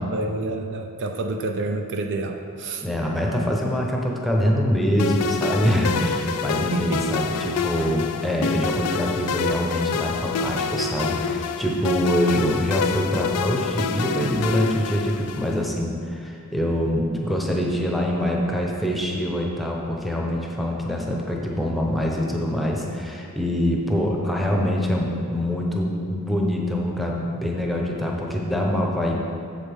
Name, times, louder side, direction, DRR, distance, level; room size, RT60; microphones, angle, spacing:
voice 1, 0.0-2.9 6.5-7.0, right 2 dB, 55° right, 4 dB, 0.5 m, -28 dB
voice 2, 2.8-29.2, equal, ahead, -2 dB, 0.8 m, -24 dB
sound 1, 5.0-15.7, left 5 dB, 90° left, 0.4 m, -27 dB
8.3 x 7.0 x 3.6 m, 2.4 s
head